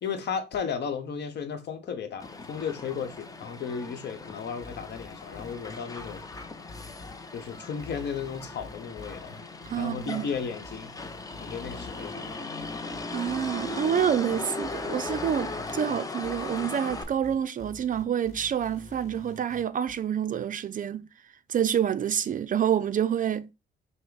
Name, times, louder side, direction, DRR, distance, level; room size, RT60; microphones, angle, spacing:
voice 1, 0.0-6.2 7.3-9.4 9.8-10.9 11.4-12.4, left 6 dB, 60° left, 0.9 m, -34 dB
Motor vehicle (road), 2.2-17.0, left 3 dB, 15° left, 0.5 m, -38 dB
sound 1, 4.6-19.9, left 3 dB, 35° left, 1.3 m, -47 dB
voice 2, 9.7-10.3 13.1-21.1 21.5-23.5, right 9 dB, 45° right, 0.4 m, -28 dB
5.6 x 2.1 x 3.9 m
cardioid pair, 90°, 20 cm